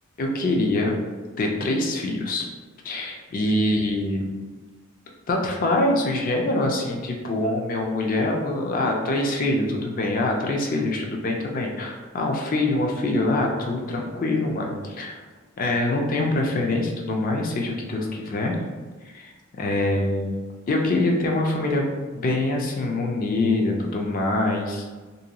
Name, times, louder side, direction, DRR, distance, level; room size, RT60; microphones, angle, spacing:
voice 1, 0.2-1.0 1.4-2.4 2.8-4.2 5.3-15.2 15.6-18.6 19.1-20.3 20.7-21.9 22.1-24.9, left 2 dB, 40° left, 1 dB, 0.4 m, -24 dB
2.6 x 2.2 x 2.8 m, 1.3 s
head